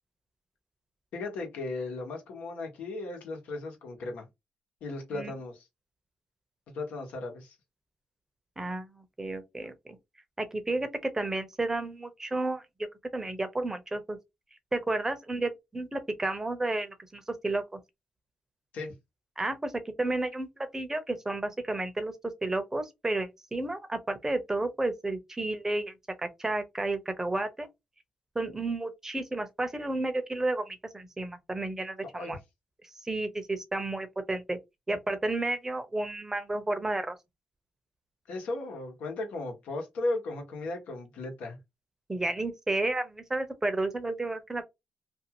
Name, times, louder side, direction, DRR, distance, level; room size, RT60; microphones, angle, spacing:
voice 1, 1.1-4.2 4.8-5.6 6.7-7.5 18.7-18.9 32.1-32.3 38.3-41.6, left 2 dB, 85° left, 1.1 m, -36 dB
voice 2, 8.6-10.0 10.4-12.6 13.1-14.2 14.7-17.8 19.4-22.1 22.4-25.9 26.2-27.7 28.3-32.4 33.0-34.6 34.9-37.1 42.1-44.6, right 2 dB, 20° right, 0.7 m, -32 dB
2.6 x 2.4 x 2.9 m
cardioid pair, 75°, 3 cm